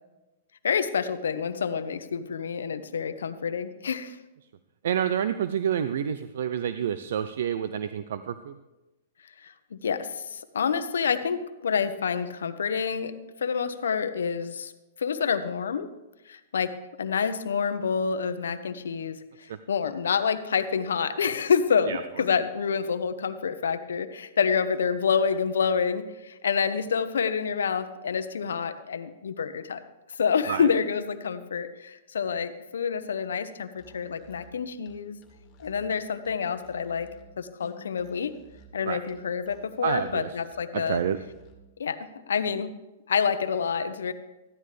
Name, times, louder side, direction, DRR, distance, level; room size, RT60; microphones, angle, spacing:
voice 1, 0.6-4.2 9.4-13.1 13.4-14.7 15.0-15.9 16.3-29.8 30.1-35.2 35.6-37.1 37.4-38.3 38.7-41.0 41.8-42.7 43.1-44.1, left 6 dB, 85° left, 11 dB, 0.9 m, -28 dB
voice 2, 4.8-8.6 19.5-19.6 21.9-22.0 30.5-30.7 38.8-39.0 39.8-40.3 40.7-41.2, right 9 dB, 70° right, 12 dB, 0.5 m, -28 dB
Musical instrument, 33.7-41.7, right 2 dB, 30° left, 2.3 m, -54 dB
14.5 x 11.0 x 3.3 m, 1.0 s
hypercardioid pair, 135°, 0 cm